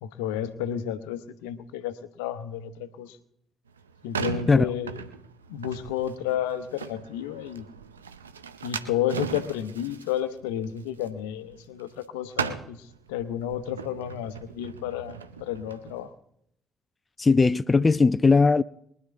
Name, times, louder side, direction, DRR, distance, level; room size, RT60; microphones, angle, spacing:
voice 1, 0.0-3.2 4.0-5.0 5.5-7.6 8.6-16.1, left 10 dB, 75° left, 0.9 m, -31 dB
sound 1, 3.7-12.0 12.3-16.0, right 7 dB, 90° right, 0.7 m, -38 dB
voice 2, 17.2-18.6, left 4 dB, 25° left, 0.4 m, -19 dB
22.5 x 11.0 x 3.5 m
hypercardioid pair, 45°, 0 cm